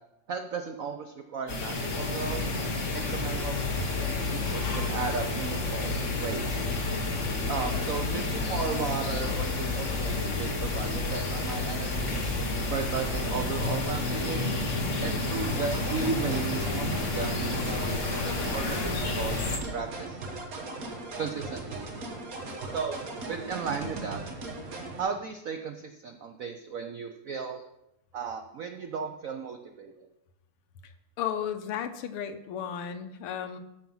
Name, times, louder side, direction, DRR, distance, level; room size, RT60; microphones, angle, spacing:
voice 1, 0.3-2.5 2.9-6.6 7.5-12.2 12.7-14.5 15.0-20.2 21.2-21.8 22.7-24.2 25.0-27.6 28.1-30.1, right 5 dB, 80° right, 6 dB, 0.7 m, -35 dB
sound 1, 1.5-19.6, left 3 dB, 40° left, 1.5 m, -30 dB
sound 2, 15.4-25.0, right 2 dB, 45° right, 1.7 m, -38 dB
voice 2, 30.8-33.6, left 8 dB, 85° left, 8 dB, 1.8 m, -34 dB
13.5 x 5.9 x 5.5 m, 0.91 s
omnidirectional pair, 2.4 m